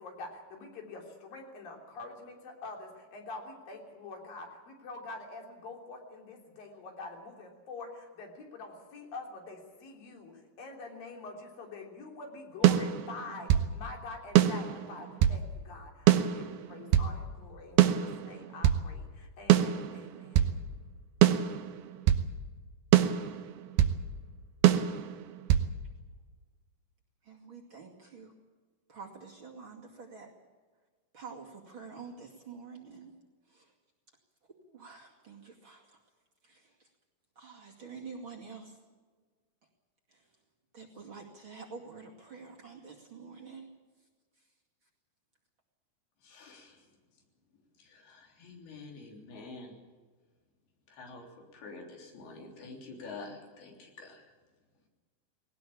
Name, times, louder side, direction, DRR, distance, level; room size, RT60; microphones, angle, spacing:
voice 1, 0.0-20.6, left 3 dB, 65° left, 1 dB, 5.1 m, -45 dB
sound 1, 12.6-13.7 14.4-15.4 16.1-17.1 17.8-18.8 19.5-20.6 21.2-22.3 22.9-24.0 24.6-25.7, right 11 dB, 85° right, 2.9 m, -24 dB
voice 2, 27.2-28.3 28.9-30.3 31.1-33.1 33.5-33.7 34.6-36.0 36.4-36.9 37.4-38.8 40.1-40.2 40.7-43.7, right 5 dB, 35° right, -1 dB, 2.7 m, -48 dB
voice 3, 46.2-46.8 47.8-49.8 50.9-54.3, left 3 dB, 85° left, 1 dB, 5.3 m, -47 dB
20.0 x 18.5 x 8.6 m, 1.4 s
omnidirectional pair, 4.3 m